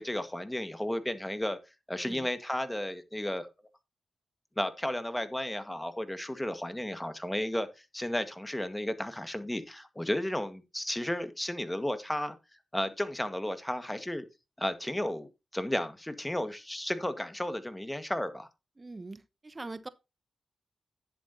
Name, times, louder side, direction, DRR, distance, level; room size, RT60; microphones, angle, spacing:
voice 1, 0.0-1.6 1.9-3.5 4.6-12.4 12.7-14.3 14.6-18.5, left 1 dB, 10° left, 1.8 m, -33 dB
voice 2, 18.8-19.9, right 2 dB, 35° right, 1.0 m, -42 dB
10.5 x 7.9 x 2.9 m
supercardioid pair, 40°, 0 cm